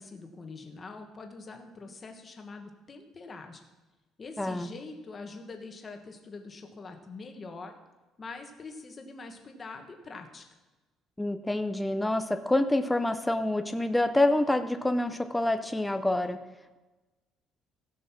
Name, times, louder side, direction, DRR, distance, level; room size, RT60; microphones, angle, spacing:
voice 1, 0.0-3.6 4.2-7.7 8.2-10.4, left 3 dB, 25° left, 5 dB, 1.4 m, -44 dB
voice 2, 4.4-4.7 11.2-16.4, left 1 dB, 5° left, 8 dB, 0.5 m, -27 dB
15.5 x 6.5 x 6.0 m, 1.1 s
cardioid pair, 150°, 0 cm